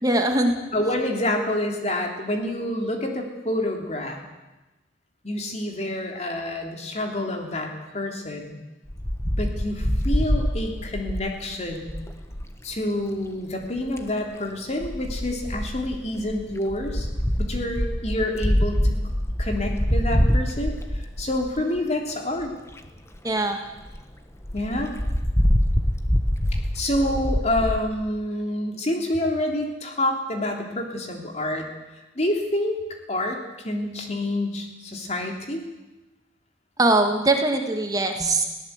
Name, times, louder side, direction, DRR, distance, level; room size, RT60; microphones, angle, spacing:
voice 1, 0.0-0.6 23.2-23.6 36.8-38.4, right 2 dB, 20° right, 4 dB, 2.0 m, -21 dB
voice 2, 0.7-4.2 5.2-8.6 9.3-12.0 12.6-17.1 17.4-19.0 19.4-20.7 21.2-22.5 24.5-24.9 26.4-26.5 26.7-31.7 32.1-32.8 33.1-33.4 33.6-35.6, left 1 dB, 35° left, 2 dB, 3.2 m, -27 dB
Wind, 8.9-12.5 13.6-14.1 14.8-21.8 22.4-22.5 22.7-22.8 23.1-23.2 23.5-23.6 23.9-24.0 24.4-27.8, equal, 15° left, 1.3 m, -25 dB
21.0 x 17.0 x 8.2 m, 1.1 s
head